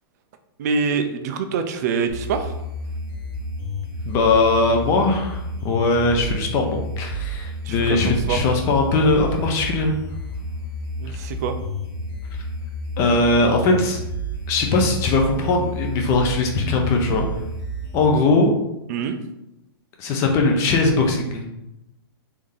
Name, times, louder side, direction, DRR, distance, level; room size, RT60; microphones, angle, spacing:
voice 1, 0.6-2.6 7.6-8.4 11.0-11.5 18.9-19.2, right 5 dB, 40° right, 7 dB, 0.4 m, -25 dB
sound 1, 2.1-18.1, right 1 dB, 45° left, 1.0 m, -31 dB
voice 2, 4.1-9.9 13.0-14.0 14.5-17.3 17.9-18.6 20.0-21.4, left 3 dB, 20° left, 2 dB, 0.4 m, -20 dB
3.4 x 2.7 x 3.6 m, 0.87 s
hypercardioid pair, 155°, 13 cm